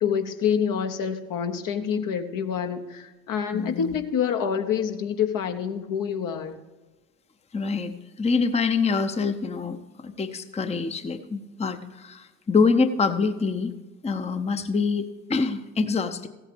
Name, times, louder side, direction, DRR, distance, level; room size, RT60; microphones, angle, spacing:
voice 1, 0.0-6.6, left 7 dB, 55° left, 6 dB, 1.2 m, -27 dB
voice 2, 3.5-4.0 7.5-9.8 10.0-13.7 14.0-16.3, left 4 dB, 15° left, 9 dB, 0.8 m, -25 dB
15.5 x 8.5 x 3.5 m, 1.2 s
hypercardioid pair, 55°, 39 cm